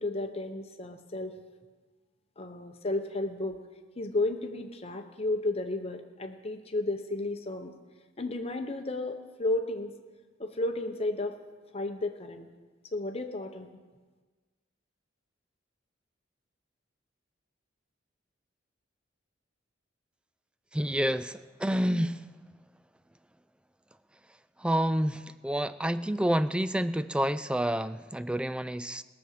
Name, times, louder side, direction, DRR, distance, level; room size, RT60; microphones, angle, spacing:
voice 1, 0.0-1.3 2.4-3.6 4.0-7.7 8.2-9.9 10.4-11.4 11.7-12.5 12.9-13.7, left 2 dB, 30° left, 6 dB, 0.9 m, -33 dB
voice 2, 20.7-22.3 24.6-29.0, equal, 5° right, 14 dB, 0.3 m, -29 dB
20.5 x 7.1 x 6.5 m, 1.4 s
head